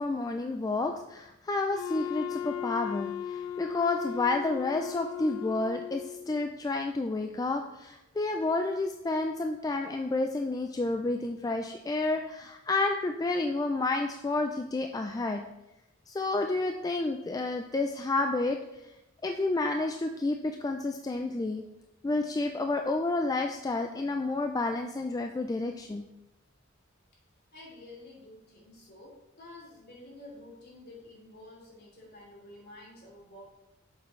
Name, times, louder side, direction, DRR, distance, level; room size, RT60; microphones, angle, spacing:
voice 1, 0.0-15.4 16.1-18.8 19.2-21.6 22.0-26.0, left 2 dB, 20° left, 4 dB, 0.3 m, -30 dB
Wind instrument woodwind instrument, 1.7-6.4, left 10 dB, 85° left, 0.4 m, -37 dB
voice 2, 27.5-33.4, left 1 dB, 55° left, -3 dB, 2.9 m, -50 dB
8.4 x 6.9 x 3.2 m, 0.92 s
head